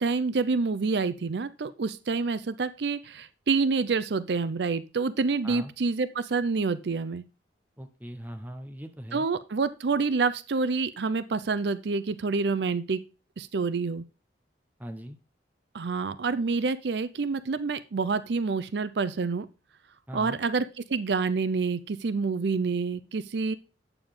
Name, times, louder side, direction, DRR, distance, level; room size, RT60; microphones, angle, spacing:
voice 1, 0.0-7.2 9.1-13.0 13.4-14.0 15.7-19.5 20.1-20.6 20.9-23.5, right 4 dB, 70° right, 14 dB, 0.5 m, -27 dB
voice 2, 7.8-9.3 14.8-15.2 20.1-20.4, equal, 10° right, 5 dB, 1.0 m, -40 dB
8.7 x 6.9 x 3.7 m, 0.32 s
head